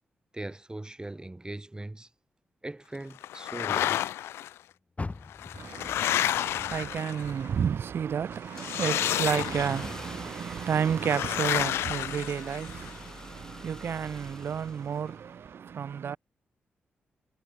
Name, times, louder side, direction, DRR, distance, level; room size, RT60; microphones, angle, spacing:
voice 1, 0.3-2.1 2.6-4.0, right 2 dB, 20° right, 3.5 m, -40 dB
sound 1, 3.2-4.5 5.3-7.5 8.5-10.0 11.0-12.9, left 12 dB, 85° left, 0.4 m, -30 dB
Car, 4.9-8.2 8.6-10.0 10.4-10.5 11.1-11.2, left 3 dB, 35° left, 6.5 m, -43 dB
voice 2, 5.5-16.2, right 7 dB, 65° right, 1.1 m, -31 dB
Car / Engine starting, 7.6-15.5, left 1 dB, 15° left, 5.1 m, -46 dB
supercardioid pair, 50°, 4 cm